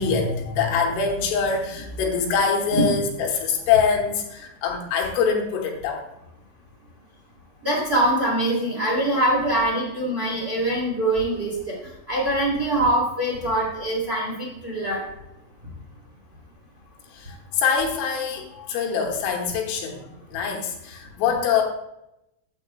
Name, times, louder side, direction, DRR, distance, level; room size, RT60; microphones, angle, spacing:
voice 1, 0.0-6.0 17.1-21.6, left 6 dB, 80° left, 1 dB, 3.6 m, -24 dB
voice 2, 7.6-11.7 12.1-15.0, right 1 dB, 15° right, -4 dB, 2.4 m, -23 dB
12.5 x 9.0 x 2.3 m, 0.87 s
omnidirectional pair, 5.9 m